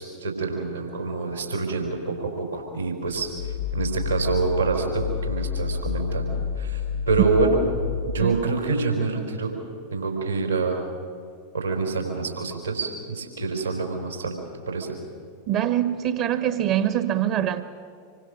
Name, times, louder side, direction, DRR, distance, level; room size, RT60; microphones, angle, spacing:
voice 1, 0.0-3.3 3.7-6.3 6.6-6.8 7.1-7.6 8.1-9.5 9.9-10.8 11.5-14.4 14.7-14.9, right 4 dB, 80° right, 4.3 m, -26 dB
sound 1, 3.1-8.5, left 6 dB, 70° left, 1.8 m, -29 dB
voice 2, 15.5-17.6, right 11 dB, 40° right, 1.3 m, -24 dB
26.0 x 24.0 x 6.7 m
figure-of-eight pair, 90°, 0 cm